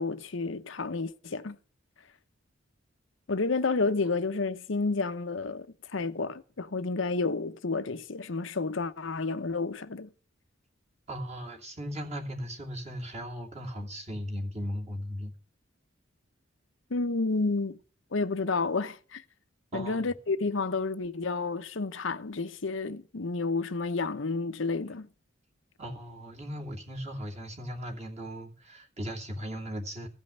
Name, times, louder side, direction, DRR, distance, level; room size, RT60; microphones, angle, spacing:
voice 1, 0.0-1.6 3.3-10.1 16.9-17.8 18.1-19.2 19.7-25.1, left 3 dB, 70° left, 0.8 m, -30 dB
voice 2, 11.1-15.3 19.7-20.1 25.8-30.1, equal, 30° right, 2.7 m, -37 dB
16.0 x 5.4 x 9.9 m
head